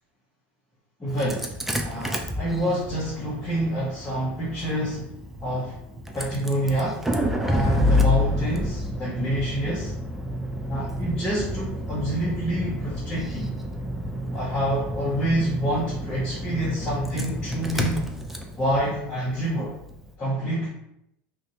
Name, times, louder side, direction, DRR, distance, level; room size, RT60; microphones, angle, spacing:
voice 1, 1.0-1.5 1.8-5.1 5.4-5.7 6.1-7.0 7.4-9.9 10.6-13.5 14.3-18.0 18.6-19.8 20.2-20.7, right 1 dB, 15° left, -8 dB, 0.8 m, -27 dB
Engine starting, 1.1-20.0, left 1 dB, 5° right, 0.4 m, -29 dB
2.6 x 2.2 x 4.0 m, 0.79 s
supercardioid pair, 130°, 6 cm